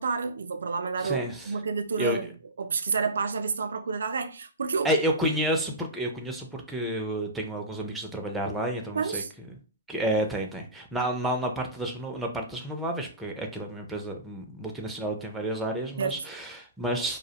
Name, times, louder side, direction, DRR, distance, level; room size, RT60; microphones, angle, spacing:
voice 1, 0.0-2.3 2.6-4.9 8.9-9.3 16.0-16.2, right 5 dB, 70° right, 0.3 m, -29 dB
voice 2, 1.0-1.5 2.0-2.2 4.8-9.2 9.9-17.2, right 1 dB, 5° right, 0.4 m, -30 dB
2.2 x 2.1 x 2.8 m
hypercardioid pair, 145°, 0 cm